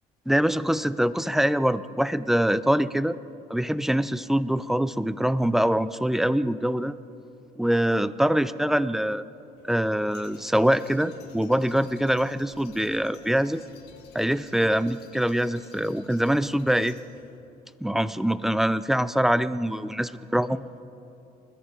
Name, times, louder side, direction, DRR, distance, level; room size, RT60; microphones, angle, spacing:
voice 1, 0.3-3.2 3.5-6.9 7.6-9.2 9.6-13.6 14.1-17.0 17.8-20.6, equal, ahead, 16 dB, 0.4 m, -24 dB
sound 1, 9.6-17.4, left 6 dB, 80° left, 1.8 m, -54 dB
21.5 x 13.0 x 4.9 m, 2.8 s
cardioid pair, 110°, 17 cm